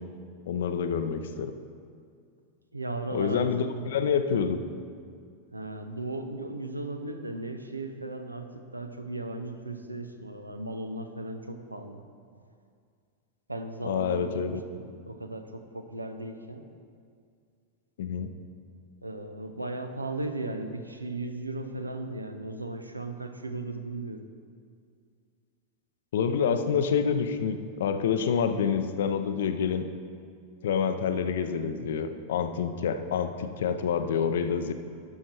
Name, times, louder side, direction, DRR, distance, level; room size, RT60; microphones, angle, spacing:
voice 1, 0.5-1.5 3.1-4.6 13.8-14.6 18.0-18.3 26.1-29.9 30.6-34.7, left 7 dB, 60° left, 9 dB, 0.5 m, -27 dB
voice 2, 2.7-3.6 5.5-12.0 13.5-16.6 19.0-24.2, right 2 dB, 85° right, 7 dB, 0.6 m, -36 dB
11.5 x 6.4 x 4.3 m, 2.2 s
figure-of-eight pair, 90°, 0 cm